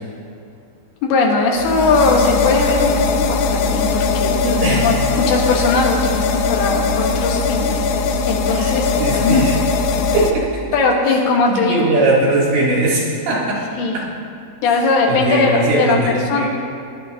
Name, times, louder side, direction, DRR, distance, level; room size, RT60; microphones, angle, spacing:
voice 1, 1.0-4.3 4.8-9.5 10.7-11.8 13.8-14.0 14.6-16.0 16.3-16.5, left 3 dB, 65° left, -1 dB, 3.0 m, -19 dB
sound 1, 1.6-10.3, left 4 dB, 85° left, 2.9 m, -19 dB
voice 2, 4.4-5.0 8.5-9.6 10.1-10.5 11.1-11.2 11.5-13.6 13.9-14.1 14.7-16.5, right 2 dB, 70° right, -8 dB, 5.3 m, -20 dB
23.0 x 11.0 x 2.9 m, 2.5 s
omnidirectional pair, 5.4 m